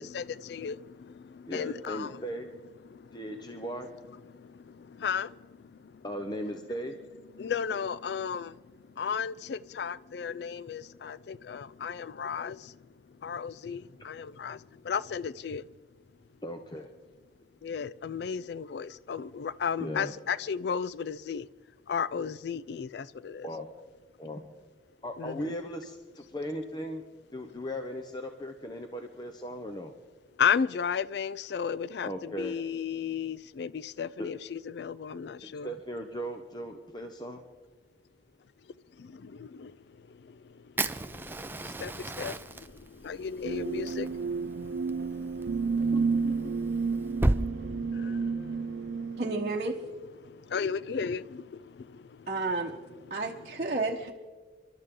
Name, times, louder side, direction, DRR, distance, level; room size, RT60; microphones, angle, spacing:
voice 1, 0.0-2.2 2.8-3.7 4.2-6.0 7.3-15.7 17.6-21.5 21.9-23.5 25.2-25.5 30.4-35.7 38.6-49.2 49.9-53.8, left 6 dB, 65° left, 0.4 m, -35 dB
voice 2, 1.5-2.5 3.1-3.9 6.0-7.0 16.4-16.9 19.8-20.1 23.4-23.7 24.2-24.4 25.0-27.0 27.3-29.9 32.0-32.6 35.4-37.4 45.9-46.6, equal, 25° left, 0.9 m, -37 dB
Fire, 40.8-47.4, right 1 dB, 10° right, 0.5 m, -34 dB
sound 1, 43.4-49.5, right 5 dB, 70° right, 0.5 m, -31 dB
voice 3, 49.2-49.7 52.3-52.7 53.1-54.1, right 3 dB, 40° right, 1.0 m, -31 dB
29.0 x 12.5 x 3.8 m
head